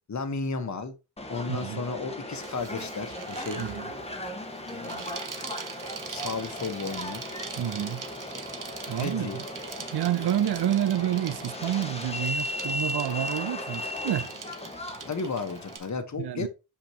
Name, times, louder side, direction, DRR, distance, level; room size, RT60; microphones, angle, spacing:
voice 1, 0.1-0.9 1.3-3.6 4.7-5.0 6.1-7.2 9.0-9.4 15.1-16.5, left 4 dB, 35° left, 1.3 m, -33 dB
Subway metro underground, 1.2-15.8, left 1 dB, 15° left, 1.4 m, -37 dB
voice 2, 1.5-1.8 3.6-3.9 7.6-8.0 8.9-9.4 9.9-14.3 16.1-16.5, right 11 dB, 55° right, 0.7 m, -29 dB
Bicycle, 2.3-15.9, right 6 dB, 40° right, 1.0 m, -43 dB
7.1 x 5.3 x 3.0 m
cardioid pair, 80°, 47 cm